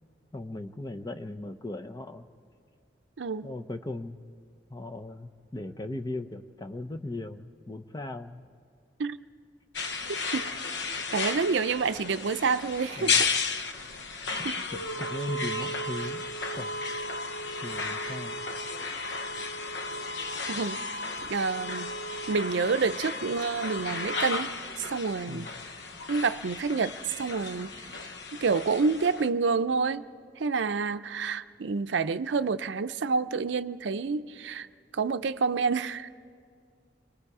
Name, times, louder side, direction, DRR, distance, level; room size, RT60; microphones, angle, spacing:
voice 1, 0.3-2.2 3.4-4.2 4.7-8.5 13.0-13.2 14.4-16.2 16.6-16.7 17.6-18.4 25.3-25.5, left 2 dB, 20° left, 7 dB, 0.7 m, -38 dB
voice 2, 3.2-3.5 9.0-9.2 10.1-10.4 11.1-13.3 14.4-14.5 20.5-20.8 21.3-22.0 22.3-25.5 26.1-27.7 28.0-28.1 28.4-30.1 30.4-34.7 34.9-36.1, right 4 dB, 80° right, 12 dB, 0.5 m, -28 dB
sound 1, 9.7-29.3, left 3 dB, 70° left, 0.9 m, -34 dB
30.0 x 22.5 x 4.9 m, 2.2 s
head